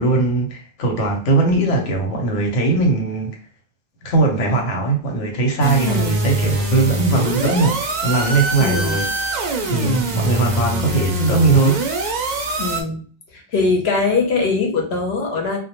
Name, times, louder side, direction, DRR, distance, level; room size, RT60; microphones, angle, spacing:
voice 1, 0.0-3.4 4.0-9.1 9.7-11.8, right 3 dB, 90° left, 1 dB, 1.1 m, -19 dB
sound 1, 5.6-12.8, right 2 dB, 60° right, 0.4 m, -23 dB
voice 2, 5.8-6.2 8.6-9.0 12.6-13.0 13.3-15.6, left 4 dB, 65° left, 1 dB, 0.9 m, -21 dB
2.1 x 2.1 x 2.8 m, 0.42 s
omnidirectional pair, 1.2 m